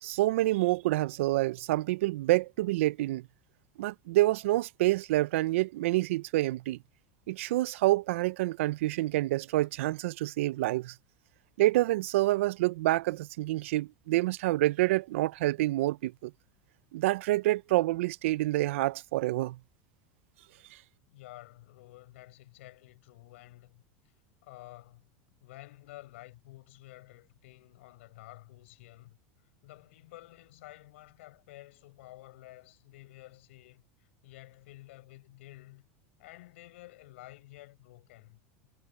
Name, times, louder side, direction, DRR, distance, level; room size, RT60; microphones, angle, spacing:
voice 1, 0.0-3.3 3.8-6.8 7.3-10.9 11.6-16.3 16.9-19.6, right 17 dB, 85° right, 0.3 m, -27 dB
voice 2, 21.1-23.8 24.4-25.1 25.4-29.2 29.6-35.9 36.2-38.7, left 18 dB, 75° left, 6.4 m, -51 dB
supercardioid pair, 170°, 7 cm